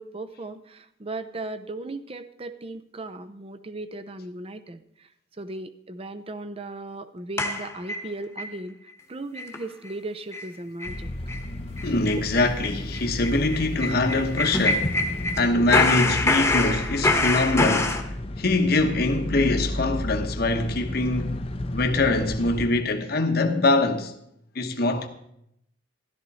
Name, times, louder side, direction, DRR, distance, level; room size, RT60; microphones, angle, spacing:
voice 1, 0.0-5.1 5.4-8.8 9.1-11.1, right 2 dB, 30° right, 0.7 m, -37 dB
sound 1, 7.4-8.5 8.9-9.0 9.3-9.6 9.9-10.0 10.3-10.5 10.8-11.0 11.3-11.4 11.8-15.4 15.7-18.0, left 2 dB, 15° left, 1.2 m, -25 dB
sound 2, 10.8-22.7, left 1 dB, 30° left, 0.7 m, -33 dB
voice 2, 11.8-14.9 15.4-18.0 18.4-21.4 21.7-24.1 24.5-25.1, left 2 dB, 55° left, 1.1 m, -23 dB
13.5 x 12.5 x 4.2 m
head